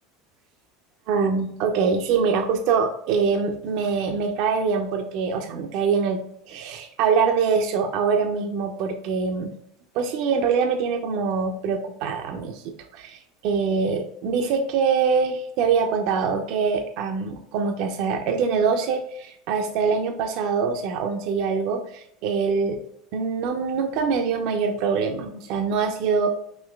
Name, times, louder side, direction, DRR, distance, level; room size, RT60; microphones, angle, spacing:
voice 1, 1.1-9.5 9.9-12.6 12.9-22.8 23.1-26.3, right 5 dB, 60° right, 5 dB, 0.5 m, -24 dB
5.2 x 3.0 x 2.2 m, 0.74 s
hypercardioid pair, 75°, 0 cm